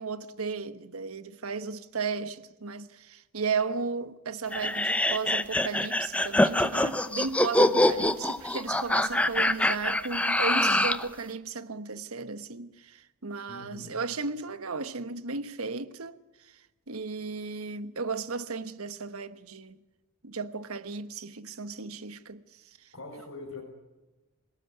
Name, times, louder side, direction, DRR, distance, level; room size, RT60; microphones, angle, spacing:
voice 1, 0.0-16.2 16.4-16.5 16.9-19.8 20.2-22.4, right 4 dB, 85° right, 1.3 m, -35 dB
sound 1, 4.5-11.1, left 1 dB, 5° left, 0.8 m, -25 dB
voice 2, 13.5-13.9 22.9-23.6, left 2 dB, 65° left, 6.5 m, -42 dB
27.0 x 18.5 x 9.7 m
head